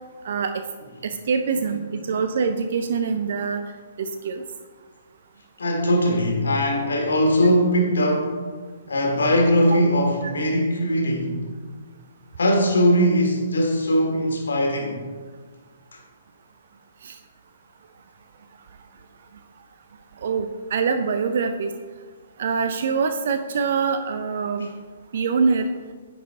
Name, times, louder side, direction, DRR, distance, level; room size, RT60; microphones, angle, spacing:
voice 1, 1.0-3.6 4.0-4.4 9.7-9.8 10.2-10.3 17.0-17.1 20.2-21.7 22.4-24.7 25.1-25.7, right 5 dB, 55° right, 7 dB, 0.5 m, -24 dB
voice 2, 5.6-8.4 8.9-11.3 12.4-15.0, equal, 70° left, 1 dB, 1.6 m, -20 dB
9.8 x 4.8 x 3.7 m, 1.5 s
figure-of-eight pair, 125°, 0 cm